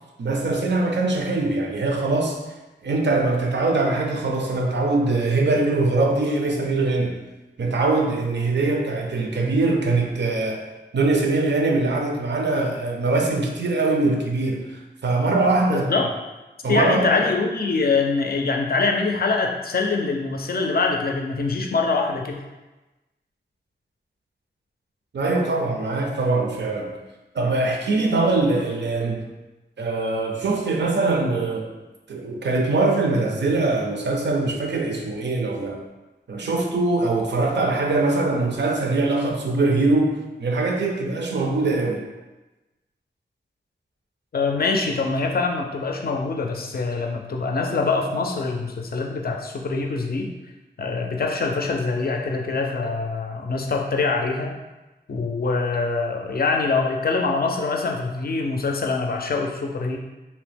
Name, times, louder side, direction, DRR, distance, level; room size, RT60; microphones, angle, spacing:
voice 1, 0.2-2.4 2.8-7.2 7.6-10.6 10.9-15.9 16.6-17.2 25.1-26.9 27.3-29.2 29.8-31.7 32.1-35.8 36.3-42.0, right 3 dB, 75° right, 1 dB, 0.4 m, -22 dB
voice 2, 15.7-16.1 16.7-22.4 44.3-50.3 50.8-54.5 55.1-60.0, left 4 dB, 55° left, 2 dB, 0.4 m, -24 dB
2.8 x 2.0 x 3.3 m, 1.1 s
wide cardioid pair, 75°, 18 cm